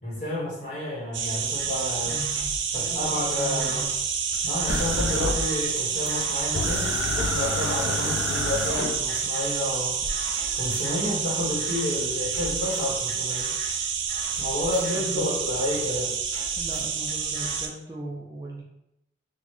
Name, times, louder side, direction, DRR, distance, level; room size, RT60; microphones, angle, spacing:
voice 1, 0.0-2.2 2.7-3.8 4.4-13.5 14.4-16.1, left 1 dB, 40° left, -7 dB, 1.3 m, -30 dB
sound 1, 1.1-17.7, right 6 dB, 85° right, 0.5 m, -28 dB
sound 2, 1.6-1.7 2.1-3.8 4.3-7.1 7.6-7.8 8.3-8.8 9.1-9.7 10.1-11.1 11.6-11.8 12.3-15.8 16.3-17.6, equal, 15° left, 1.0 m, -43 dB
voice 2, 2.1-3.9 15.0-15.3 16.6-18.6, right 1 dB, 20° right, -3 dB, 0.3 m, -38 dB
sound 3, 4.7-5.8 6.1-6.2 6.5-9.2 10.0-10.1, left 3 dB, 85° left, 0.4 m, -30 dB
3.9 x 2.1 x 3.1 m, 0.85 s
head